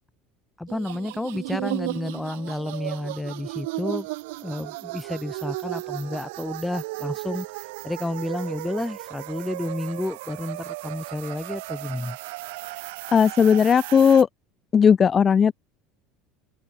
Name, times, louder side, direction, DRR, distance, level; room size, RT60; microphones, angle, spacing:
voice 1, 0.6-4.1 4.4-7.5 7.8-12.2, left 1 dB, 5° left, 1.7 m, -31 dB
sound 1, 0.7-14.2, right 24 dB, 80° right, 1.6 m, -35 dB
voice 2, 13.1-14.3 14.7-15.5, left 7 dB, 30° left, 0.8 m, -16 dB
supercardioid pair, 120°, 0 cm